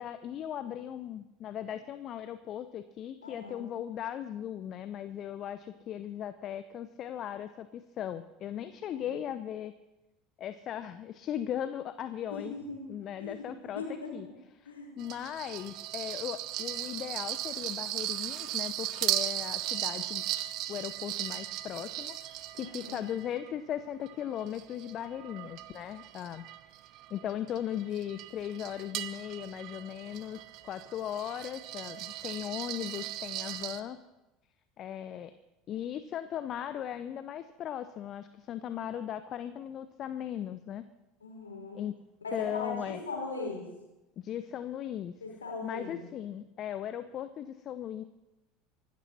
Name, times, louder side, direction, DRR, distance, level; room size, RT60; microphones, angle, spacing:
voice 1, 0.0-9.7 10.4-12.5 12.9-14.3 14.6-20.2 20.7-26.4 27.1-34.0 34.8-35.3 35.7-40.9 41.7-41.9 42.3-43.0 44.2-45.1 45.6-48.0, left 10 dB, 40° left, 12 dB, 0.7 m, -38 dB
voice 2, 3.2-3.6 8.6-9.1 12.3-12.9 13.2-14.1 14.7-14.9 22.6-23.1 41.2-41.8 42.2-43.7 45.2-46.1, left 3 dB, 80° left, -1 dB, 5.4 m, -40 dB
sound 1, 15.0-23.5 24.0-33.8, right 14 dB, 50° right, 0.9 m, -37 dB
24.5 x 12.5 x 4.3 m, 1.0 s
figure-of-eight pair, 70°, 0 cm